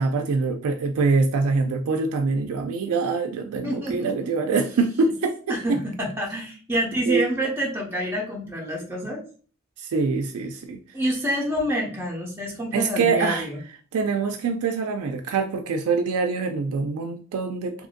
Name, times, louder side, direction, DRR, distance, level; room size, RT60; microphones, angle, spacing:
voice 1, 0.0-5.8 7.1-7.2 9.8-10.8 12.7-13.5 13.9-17.9, right 4 dB, 80° right, 5 dB, 0.3 m, -24 dB
voice 2, 3.6-4.1 5.5-9.2 10.9-13.6, equal, 10° right, -3 dB, 0.7 m, -27 dB
2.9 x 2.5 x 2.4 m, 0.41 s
head